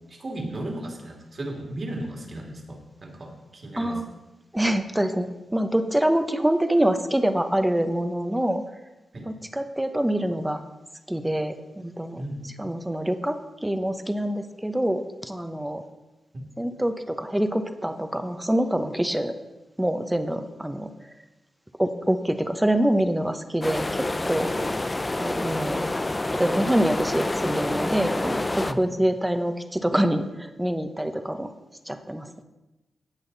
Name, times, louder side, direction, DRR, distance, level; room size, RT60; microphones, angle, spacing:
voice 1, 0.1-4.0 9.1-9.3 12.2-12.4 24.5-24.7 28.7-28.8, right 1 dB, 45° right, 1 dB, 2.7 m, -35 dB
voice 2, 3.8-4.1 4.5-8.6 9.2-10.6 11.1-12.2 12.6-15.8 16.6-19.3 19.8-20.9 21.8-24.5 25.1-25.9 26.3-31.5 31.9-32.4, right 1 dB, 10° right, 8 dB, 1.0 m, -25 dB
sound 1, 23.6-28.7, left 2 dB, 25° left, 0.6 m, -28 dB
17.5 x 6.3 x 4.1 m, 1.1 s
cardioid pair, 60°, 0 cm